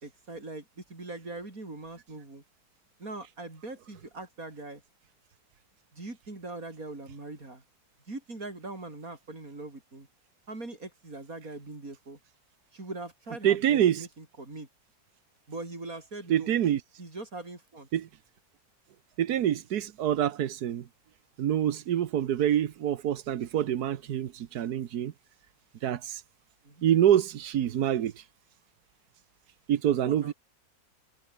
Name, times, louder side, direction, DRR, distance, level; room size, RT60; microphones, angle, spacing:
voice 1, 0.0-2.4 3.0-4.8 5.9-7.6 8.1-10.1 10.5-12.2 12.7-14.7 15.5-16.5 17.0-17.9 26.6-26.9 30.0-30.3, right 2 dB, 65° right, 5.5 m, -41 dB
voice 2, 13.4-14.0 16.3-16.8 17.9-18.1 19.2-20.9 21.4-25.1 25.8-26.2 26.8-28.1 29.7-30.3, right 10 dB, 85° right, 1.5 m, -26 dB
omnidirectional pair, 1.6 m